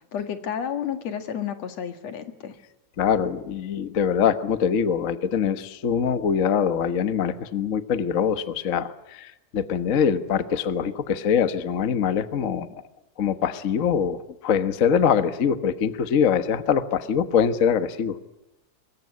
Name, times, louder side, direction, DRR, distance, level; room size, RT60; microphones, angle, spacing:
voice 1, 0.1-2.5, left 8 dB, 60° left, 8 dB, 2.9 m, -31 dB
voice 2, 3.0-12.8 13.2-18.2, left 7 dB, 80° left, 10 dB, 0.7 m, -23 dB
24.0 x 22.5 x 9.7 m, 0.90 s
omnidirectional pair, 3.5 m